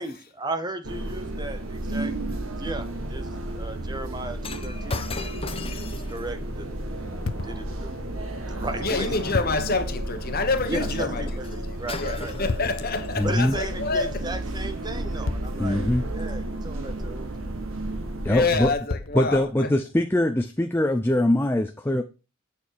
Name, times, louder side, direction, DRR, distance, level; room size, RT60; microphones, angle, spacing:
voice 1, 0.0-2.1 2.6-3.3 3.5-6.7 7.4-7.9 8.5-9.1 10.7-11.5 11.8-12.5 13.2-15.8 16.1-17.3, right 2 dB, 20° right, 0.9 m, -35 dB
sound 1, 0.8-18.7, right 1 dB, 70° right, 1.6 m, -32 dB
Shatter, 4.4-8.8 11.4-11.6 11.9-13.4 14.1-14.3, left 4 dB, 25° left, 0.9 m, -39 dB
sound 2, 4.9-5.7 7.3-7.8 9.3-9.9 12.5-13.1 15.3-16.7 18.9-19.7, left 3 dB, 70° left, 0.7 m, -34 dB
voice 2, 8.8-14.3 18.3-19.7, left 3 dB, 45° left, 1.3 m, -28 dB
voice 3, 13.2-13.6 15.6-16.1 18.2-18.7 19.1-22.0, left 1 dB, 10° left, 0.5 m, -22 dB
8.6 x 7.1 x 4.6 m
head